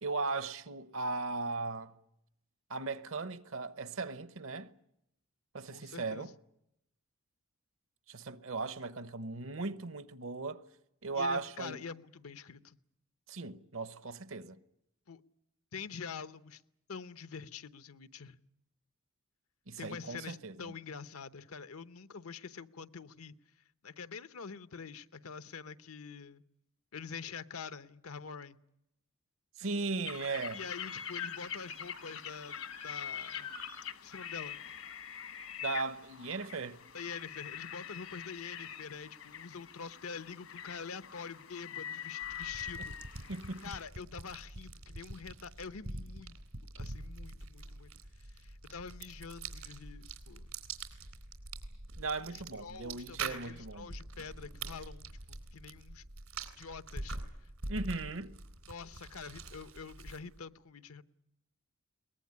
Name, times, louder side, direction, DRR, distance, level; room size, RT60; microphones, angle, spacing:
voice 1, 0.0-2.0 2.7-4.7 5.5-6.3 8.1-10.6 11.0-11.8 13.3-14.6 19.7-20.7 29.6-30.6 35.6-36.8 43.3-43.7 52.0-53.9 57.7-58.4, right 3 dB, 70° right, 0.9 m, -37 dB
voice 2, 5.7-6.3 11.1-12.8 15.1-15.2 15.7-16.6 16.9-18.4 19.8-23.4 23.8-26.4 26.9-28.6 30.5-33.5 34.0-34.6 36.9-42.9 43.2-43.3 43.6-46.4 46.8-47.9 48.2-50.5 52.2-56.0 56.6-57.2 58.7-61.0, left 5 dB, 90° left, 0.9 m, -46 dB
sound 1, 30.0-43.9, left 8 dB, 75° left, 1.2 m, -44 dB
sound 2, 42.2-60.4, right 3 dB, 85° right, 3.5 m, -45 dB
22.5 x 19.5 x 9.7 m
head